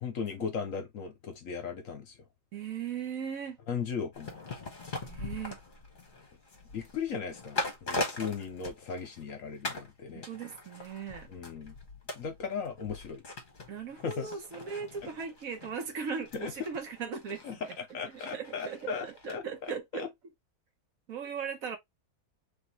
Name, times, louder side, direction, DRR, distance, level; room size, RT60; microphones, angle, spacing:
voice 1, 0.0-2.1 3.7-4.4 6.7-10.2 11.3-11.7 12.1-13.2 14.0-14.3 16.3-16.5 17.4-19.4, left 6 dB, 60° left, 1.1 m, -37 dB
voice 2, 2.5-3.6 5.0-5.6 10.3-11.3 13.7-17.7 18.1-20.1 21.1-21.8, right 6 dB, 60° right, 1.2 m, -38 dB
sound 1, 4.1-9.3 9.6-9.9 10.2-19.4 19.7-19.8, left 2 dB, 35° left, 1.1 m, -41 dB
4.1 x 3.3 x 3.0 m
omnidirectional pair, 1.8 m